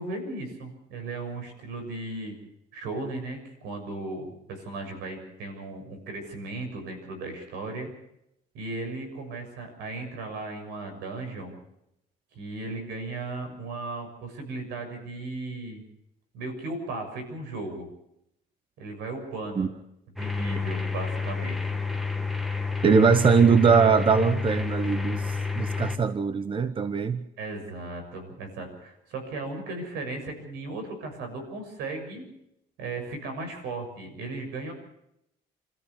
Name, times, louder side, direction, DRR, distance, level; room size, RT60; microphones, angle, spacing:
voice 1, 0.0-2.4 2.7-7.9 8.5-11.5 12.3-15.8 16.3-17.9 18.8-19.7 20.2-21.8 27.4-32.2 32.8-34.7, right 2 dB, 85° right, 6 dB, 6.7 m, -36 dB
sound 1, 20.2-26.0, left 4 dB, ahead, 1.6 m, -30 dB
voice 2, 22.8-27.2, right 5 dB, 30° right, 11 dB, 1.1 m, -21 dB
27.0 x 14.0 x 7.1 m, 0.80 s
cardioid pair, 110°, 17 cm